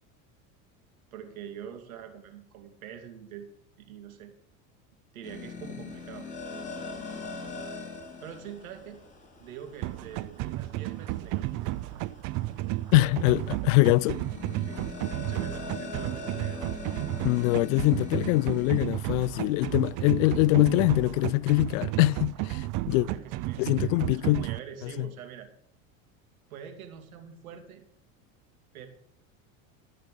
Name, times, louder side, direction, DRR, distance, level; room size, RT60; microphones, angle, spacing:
voice 1, 1.1-3.5 3.8-4.3 5.1-6.3 8.2-9.0 9.4-11.7 14.6-14.9 15.1-17.0 22.9-25.5 26.5-27.8 28.7-28.9, right 8 dB, 85° right, 2.7 m, -44 dB
sound 1, 5.2-21.4, left 4 dB, 20° left, 5.2 m, -43 dB
sound 2, 9.8-24.6, right 17 dB, 50° right, 0.6 m, -33 dB
voice 2, 12.9-14.2 17.2-23.1 23.6-24.5 24.8-25.1, left 20 dB, 70° left, 0.5 m, -23 dB
17.5 x 6.7 x 6.8 m
supercardioid pair, 100°, 41 cm